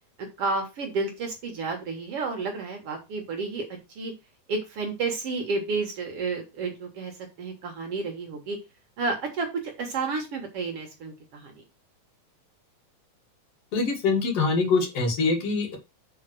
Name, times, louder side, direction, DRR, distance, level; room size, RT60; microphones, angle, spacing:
voice 1, 0.2-4.1 4.5-8.6 9.0-11.6, right 3 dB, 55° right, 4 dB, 1.9 m, -31 dB
voice 2, 13.7-15.8, left 4 dB, 50° left, 3 dB, 2.6 m, -24 dB
5.9 x 5.6 x 6.2 m, 0.26 s
omnidirectional pair, 4.1 m